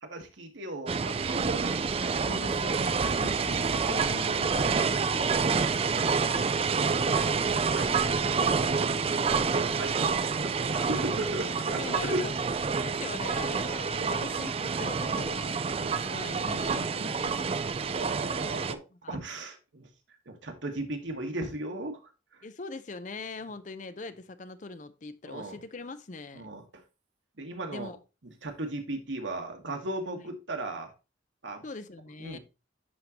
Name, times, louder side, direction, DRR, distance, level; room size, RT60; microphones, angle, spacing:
voice 1, 0.0-1.8 6.4-6.9 7.1-7.9 9.5-12.2 14.0-14.1 15.8-15.9 17.0-17.1 17.7-18.8 19.1-19.9 20.3-22.0 25.3-25.6 26.3-26.6 27.4-27.9 28.4-30.9 31.4-31.6 32.2-32.4, right 2 dB, 90° right, 1.5 m, -37 dB
sound 1, 0.9-18.7, right 5 dB, 30° right, 0.4 m, -28 dB
voice 2, 2.2-6.6 7.5-8.0 8.4-9.3 11.7-12.3 12.8-15.7 15.9-17.7 19.0-19.2 22.4-26.5 27.7-28.0 30.1-30.2 31.6-32.4, left 3 dB, 40° left, 0.6 m, -42 dB
11.0 x 3.7 x 2.9 m
head